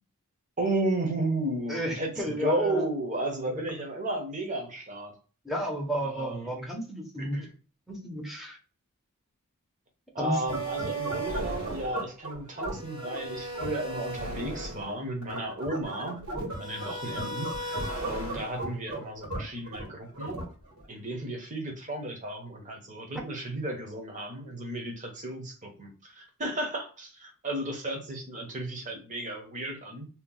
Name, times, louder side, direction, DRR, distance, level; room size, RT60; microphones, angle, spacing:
voice 1, 0.6-5.2 6.0-6.5 7.2-7.5 10.1-16.2 16.6-20.4 20.9-30.1, right 1 dB, 35° right, 2 dB, 0.9 m, -33 dB
voice 2, 1.7-2.9 3.5-3.6 5.4-7.4 7.9-8.6 10.2-10.4, equal, ahead, -1 dB, 0.8 m, -32 dB
sound 1, 10.5-20.9, right 2 dB, 80° right, 1.7 m, -35 dB
2.9 x 2.3 x 3.6 m, 0.36 s
head